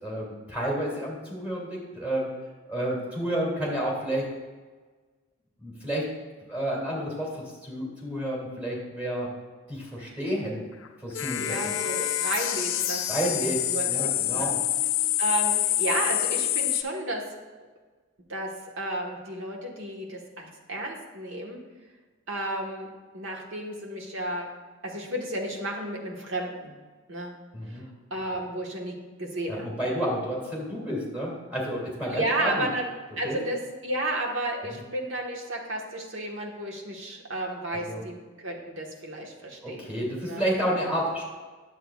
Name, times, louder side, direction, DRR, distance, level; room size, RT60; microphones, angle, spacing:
voice 1, 0.0-2.3 2.7-4.3 5.6-6.1 6.5-9.3 9.7-10.7 11.0-11.7 13.1-13.6 13.9-14.6 27.5-27.8 29.5-32.7 33.2-33.4 34.6-34.8 37.9-38.0 39.6-41.2, equal, 5° right, -4 dB, 2.4 m, -30 dB
sound 1, 10.8-10.9 11.1-16.8, left 13 dB, 65° left, 0.5 m, -27 dB
voice 2, 11.4-13.9 14.2-14.5 15.2-17.2 18.3-18.5 18.8-21.6 22.3-22.9 23.1-24.5 24.8-26.7 27.1-27.3 27.7-27.8 28.1-29.7 32.1-32.9 33.2-39.9 40.2-40.4, right 1 dB, 60° right, 0 dB, 1.3 m, -32 dB
10.0 x 7.7 x 2.4 m, 1.3 s
head